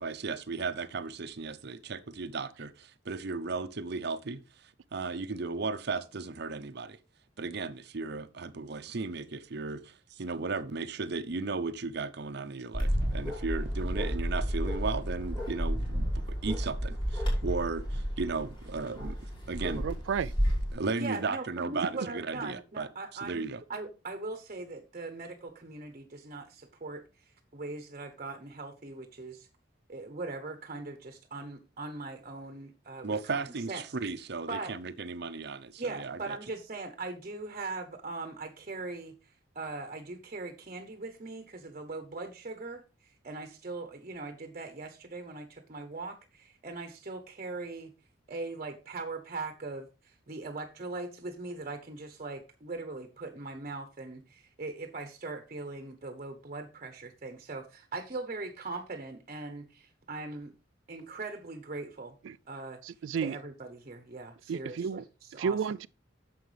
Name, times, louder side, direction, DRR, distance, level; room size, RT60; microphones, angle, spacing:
voice 1, 0.0-4.4 4.9-7.0 7.4-19.2 19.5-19.8 20.7-22.9 23.2-23.6 33.0-36.4, right 4 dB, 60° right, 0.7 m, -35 dB
Bark, 12.7-20.7, equal, 25° left, 4.7 m, -31 dB
voice 2, 19.8-20.3 62.2-62.4 62.8-63.4 64.5-65.0 65.4-65.9, right 6 dB, 85° right, 0.4 m, -32 dB
voice 3, 21.0-29.5 29.9-33.4 33.7-33.8 34.5-34.8 35.8-47.9 48.3-60.5 60.9-62.2 62.5-65.6, right 3 dB, 40° right, 1.0 m, -40 dB
9.3 x 7.0 x 3.3 m
head